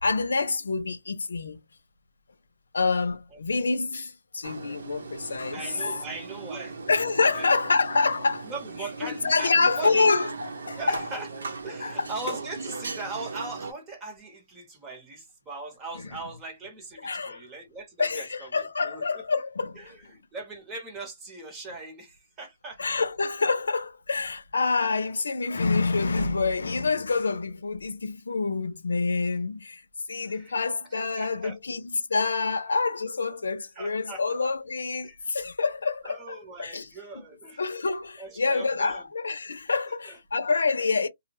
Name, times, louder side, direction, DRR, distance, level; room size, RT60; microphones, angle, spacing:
voice 1, 0.0-1.6 2.7-6.0 6.9-8.5 9.0-11.0 11.8-11.9 17.0-17.4 18.0-19.9 22.8-29.8 30.1-36.9 37.6-41.1, left 4 dB, 90° left, 0.5 m, -27 dB
sound 1, 4.4-13.7, right 4 dB, 80° right, 0.7 m, -38 dB
voice 2, 5.5-6.8 7.3-7.5 8.4-10.1 10.8-11.3 11.6-18.5 18.8-19.2 19.8-23.0 30.2-31.6 33.7-34.5 35.0-35.2 36.0-37.6 38.2-39.0 40.0-40.2, right 3 dB, 15° right, 0.9 m, -40 dB
2.1 x 2.0 x 2.9 m
hypercardioid pair, 155°, 0 cm